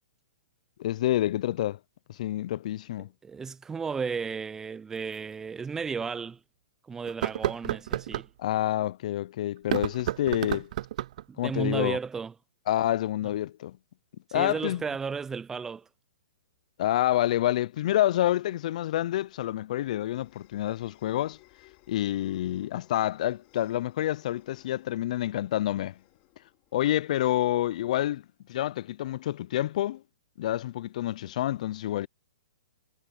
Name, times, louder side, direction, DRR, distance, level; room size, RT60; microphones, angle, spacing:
voice 1, 0.8-1.8 2.1-3.1 8.4-10.7 11.4-12.0 12.7-13.8 14.3-14.8 16.8-21.4 21.9-26.0 26.7-28.2 28.5-30.0 30.4-32.1, left 13 dB, 55° left, 0.4 m, -28 dB
voice 2, 3.2-6.4 6.9-8.3 11.3-12.3 14.3-15.9, right 5 dB, 10° right, 0.5 m, -33 dB
sound 1, 5.1-5.2 5.8-5.9 7.1-8.3 9.6-11.3, right 13 dB, 55° right, 0.5 m, -31 dB
sound 2, 19.4-28.0, left 25 dB, 35° left, 5.1 m, -62 dB
hypercardioid pair, 145°, 5 cm